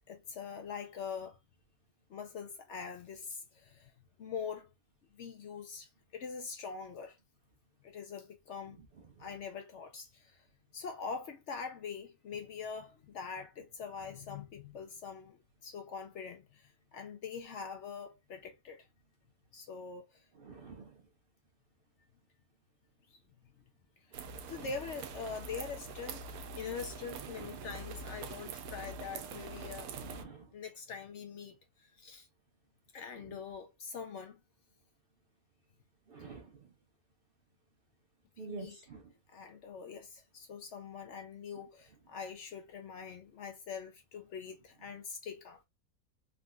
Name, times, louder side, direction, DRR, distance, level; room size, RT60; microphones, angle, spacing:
voice 1, 0.1-1.4 2.1-3.9 4.2-4.7 5.1-7.2 7.8-8.8 9.2-10.4 10.7-18.9 19.5-20.2 23.1-23.2 24.5-29.9 30.5-32.3 32.9-34.4 38.4-38.8 39.3-45.6, left 6 dB, 65° left, 0.8 m, -44 dB
voice 2, 20.3-21.0 24.1-24.7 27.3-27.7 29.9-30.5 33.2-33.4 36.1-36.6 38.4-39.1, right 5 dB, 55° right, 0.6 m, -48 dB
sound 1, 24.1-30.2, right 4 dB, 80° right, 1.0 m, -44 dB
3.6 x 2.4 x 2.2 m
omnidirectional pair, 1.5 m